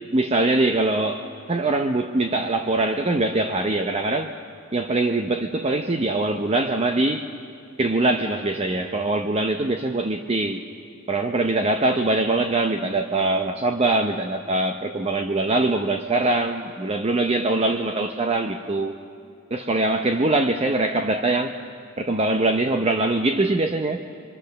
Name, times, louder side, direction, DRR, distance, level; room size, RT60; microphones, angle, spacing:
voice 1, 0.1-4.3 4.7-7.3 7.8-10.6 11.1-19.0 19.5-21.5 22.0-24.0, right 2 dB, 30° right, 6 dB, 0.6 m, -23 dB
25.0 x 24.5 x 6.6 m, 2.3 s
head